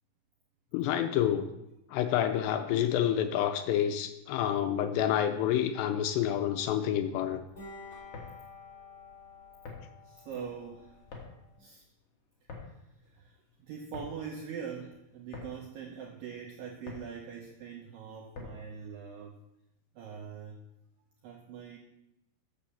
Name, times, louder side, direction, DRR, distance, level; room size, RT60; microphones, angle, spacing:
voice 1, 0.7-1.5 1.9-7.4, left 10 dB, 80° left, 8 dB, 2.6 m, -28 dB
sound 1, 6.1-11.6, left 3 dB, 20° left, 3.4 m, -51 dB
sound 2, 8.0-18.8, left 4 dB, 55° left, 1.7 m, -49 dB
voice 2, 10.0-11.0 11.6-11.8 13.1-19.4 20.0-20.6 21.2-21.8, right 7 dB, 80° right, 1 dB, 2.0 m, -43 dB
7.2 x 6.9 x 7.0 m, 0.88 s
omnidirectional pair, 5.2 m